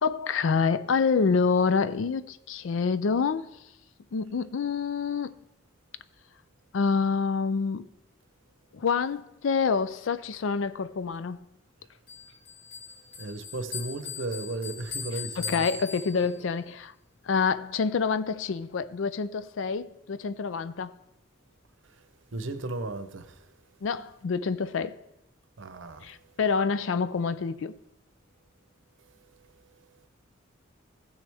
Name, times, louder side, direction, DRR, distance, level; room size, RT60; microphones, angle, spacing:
voice 1, 0.0-3.5 4.1-5.3 6.7-7.9 8.7-11.5 15.4-16.9 17.2-21.0 23.8-25.0 26.0-27.8, left 5 dB, 65° left, 0.4 m, -27 dB
Bell, 12.1-16.6, left 6 dB, 50° left, 2.3 m, -40 dB
voice 2, 13.2-15.6 22.3-23.4 25.6-26.1, right 2 dB, 65° right, 0.8 m, -35 dB
15.5 x 6.2 x 3.4 m
head